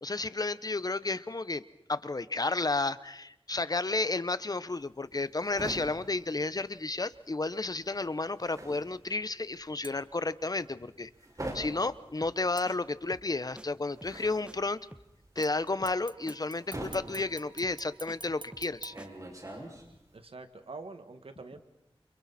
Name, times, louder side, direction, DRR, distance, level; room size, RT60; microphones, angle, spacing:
voice 1, 0.0-1.6 1.9-11.1 11.5-14.8 15.4-18.9, left 3 dB, 40° left, 15 dB, 0.9 m, -32 dB
sound 1, 4.7-7.3 7.5-20.2, right 1 dB, 35° right, 6.2 m, -44 dB
sound 2, 9.8-10.3 12.6-13.3 15.4-19.8 20.2-20.3, right 3 dB, 55° right, 1.2 m, -51 dB
sound 3, 12.2-12.4 12.7-12.8 13.1-13.3 13.6-13.7 14.0-14.2 14.5-14.6 14.9-15.1 15.4-15.5 15.8-16.0 16.3-16.4 16.7-16.9 17.2-17.3 17.6-18.2 18.5-18.7 19.0-19.1, right 1 dB, 10° right, 1.1 m, -49 dB
voice 2, 20.1-21.6, right 3 dB, 80° right, 8 dB, 1.9 m, -45 dB
29.5 x 29.0 x 4.3 m, 0.85 s
wide cardioid pair, 70°, 10 cm